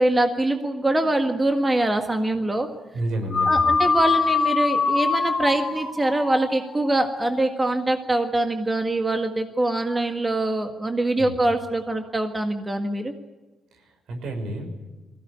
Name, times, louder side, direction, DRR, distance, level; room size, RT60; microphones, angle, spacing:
voice 1, 0.0-2.7 3.5-13.1, right 2 dB, 20° right, 5 dB, 1.7 m, -23 dB
voice 2, 2.9-3.7 11.2-11.4 13.7-14.8, right 1 dB, 75° right, 5 dB, 5.7 m, -30 dB
sound 1, 3.3-7.8, left 4 dB, 30° left, 4.4 m, -24 dB
22.0 x 16.5 x 9.9 m, 1.2 s
cardioid pair, 105°, 0 cm